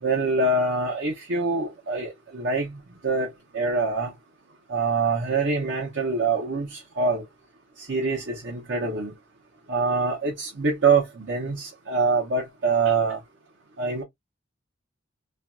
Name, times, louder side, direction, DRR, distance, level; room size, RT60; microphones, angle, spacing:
voice 1, 0.0-2.7 3.0-4.1 4.7-7.2 7.8-9.1 9.7-13.2 13.8-14.0, right 4 dB, 75° right, 0.8 m, -25 dB
2.5 x 2.2 x 2.4 m
head